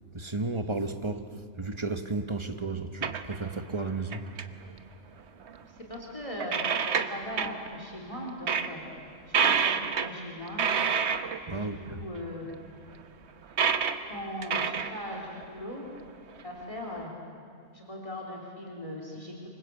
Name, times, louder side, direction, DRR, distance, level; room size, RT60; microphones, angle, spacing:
voice 1, 0.1-1.3 1.6-4.2 11.5-12.0, right 3 dB, 25° right, 1.2 m, -33 dB
sound 1, 3.0-3.6 3.9-4.4 5.5-5.6 5.9-6.0 6.4-7.7 8.1-8.2 8.5-8.7 9.3-10.1 10.4-11.4 12.5-12.6 13.5-14.0 14.4-15.4 16.0-16.1 17.0-17.1, right 6 dB, 60° right, 1.2 m, -28 dB
voice 2, 5.6-8.8 9.3-9.7 10.0-10.7 11.5-12.5 14.1-15.8 16.4-17.1 17.7-19.3, left 1 dB, 25° left, 3.5 m, -39 dB
27.0 x 24.5 x 8.3 m
omnidirectional pair, 1.3 m